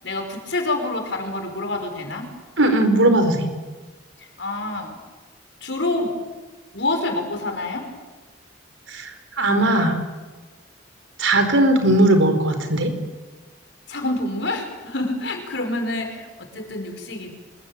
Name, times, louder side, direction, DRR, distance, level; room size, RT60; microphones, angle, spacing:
voice 1, 0.0-2.3 3.2-3.3 4.4-4.9 5.6-6.2 6.7-7.9 13.9-17.3, left 2 dB, 65° left, 5 dB, 5.5 m, -27 dB
voice 2, 2.6-3.5 8.9-9.1 9.4-10.0 11.2-12.9, right 1 dB, 90° right, 7 dB, 4.7 m, -18 dB
26.0 x 21.5 x 9.1 m, 1.3 s
head